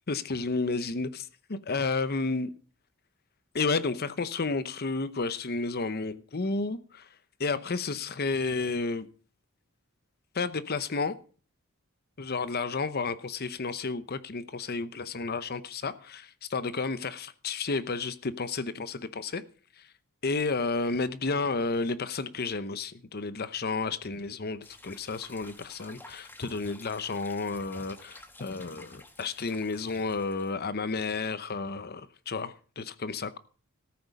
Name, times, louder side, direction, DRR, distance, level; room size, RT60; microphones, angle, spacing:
voice 1, 0.1-2.5 3.5-7.1 7.4-9.1 10.3-11.1 12.2-19.4 19.8-19.9 20.2-33.4, left 4 dB, 45° left, 0.8 m, -31 dB
sound 1, 24.6-30.5, left 2 dB, 10° left, 1.4 m, -52 dB
14.0 x 8.7 x 5.3 m
head